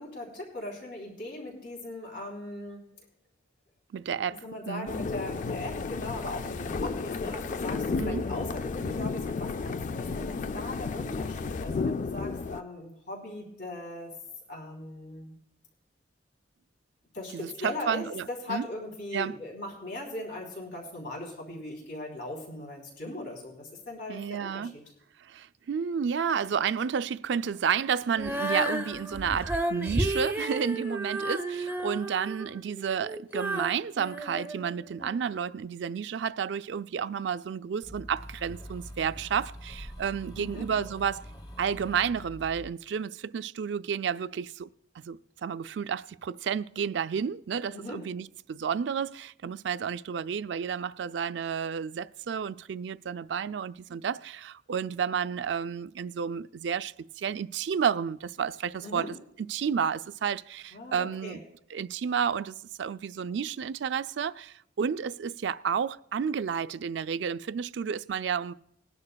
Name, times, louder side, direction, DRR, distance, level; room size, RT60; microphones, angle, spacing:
voice 1, 0.0-2.8 4.4-14.1 14.5-15.3 17.1-24.7 40.3-40.7 47.7-48.0 58.8-59.1 60.7-61.4, left 2 dB, 70° left, 3.4 m, -39 dB
voice 2, 3.9-4.9 8.0-8.2 17.3-18.7 19.1-19.4 24.1-24.7 25.2-41.3 41.6-44.7 45.0-59.2 59.5-61.4 61.7-68.5, right 7 dB, 70° right, 0.4 m, -31 dB
sound 1, 4.9-12.6, left 4 dB, 40° left, 0.3 m, -32 dB
Female singing, 28.2-35.2, right 1 dB, 10° right, 0.6 m, -32 dB
sound 2, 37.8-42.7, equal, 20° left, 1.0 m, -44 dB
20.5 x 10.5 x 2.3 m
head